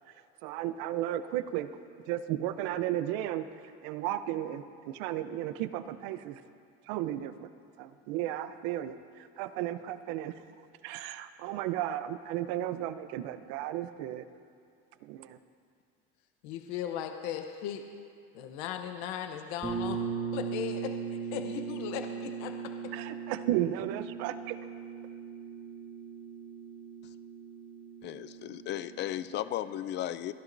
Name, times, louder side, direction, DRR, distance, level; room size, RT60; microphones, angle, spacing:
voice 1, 0.4-1.7 2.1-3.5 3.8-6.4 6.9-7.5 7.8-10.3 10.8-14.3 15.0-15.4 22.9-24.6, right 12 dB, 70° right, 12 dB, 0.7 m, -34 dB
voice 2, 16.4-17.8 18.3-20.0 20.3-22.9, left 9 dB, 70° left, 5 dB, 0.9 m, -37 dB
sound 1, 19.6-29.3, right 6 dB, 20° right, 2.3 m, -39 dB
voice 3, 28.0-30.3, left 12 dB, 35° left, 14 dB, 0.4 m, -35 dB
28.5 x 10.5 x 2.6 m, 2.4 s
supercardioid pair, 130°, 32 cm